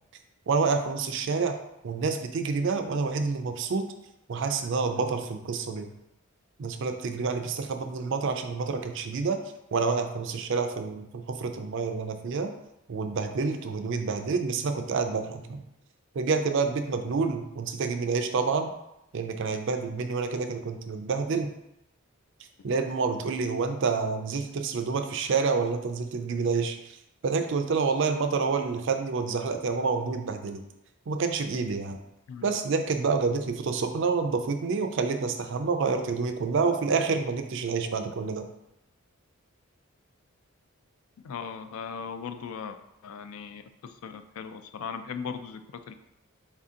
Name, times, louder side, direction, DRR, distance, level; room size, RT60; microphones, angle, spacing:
voice 1, 0.5-1.6 1.8-3.9 4.3-5.9 6.6-9.4 9.7-12.5 12.9-15.6 16.1-18.7 19.1-21.5 22.6-27.0 27.2-30.6 31.1-32.0 32.4-38.5, right 4 dB, 55° right, 7 dB, 0.4 m, -28 dB
voice 2, 41.2-42.8 43.0-45.9, left 6 dB, 70° left, 9 dB, 0.3 m, -38 dB
4.2 x 2.7 x 3.6 m, 0.85 s
head